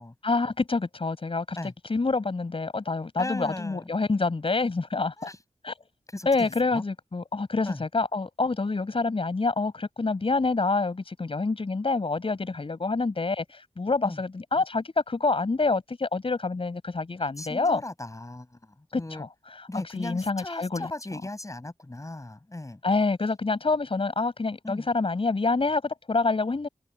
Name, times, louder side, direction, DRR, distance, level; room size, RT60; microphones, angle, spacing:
voice 1, 0.2-1.6 1.9-5.1 5.6-5.7 6.3-17.8 18.9-19.3 19.7-20.9 22.8-26.7, left 3 dB, 55° left, 6.9 m, -27 dB
voice 2, 3.2-3.9 5.2-5.4 6.1-6.8 7.6-7.8 14.0-14.2 17.2-19.3 19.7-22.8 24.6-24.9, left 2 dB, 30° left, 7.5 m, -37 dB
cardioid pair, 45°, 11 cm